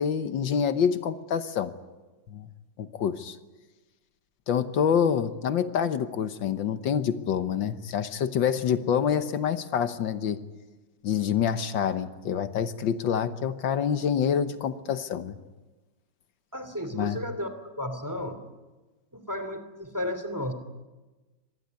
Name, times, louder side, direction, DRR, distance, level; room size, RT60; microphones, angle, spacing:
voice 1, 0.0-1.7 2.3-2.5 2.8-3.4 4.5-10.4 11.0-15.4 16.9-17.2, left 8 dB, 80° left, 10 dB, 1.7 m, -27 dB
voice 2, 16.5-17.5 17.8-18.4 19.1-20.5, left 1 dB, 10° right, 9 dB, 2.5 m, -33 dB
25.5 x 19.5 x 9.5 m, 1.2 s
omnidirectional pair, 2.1 m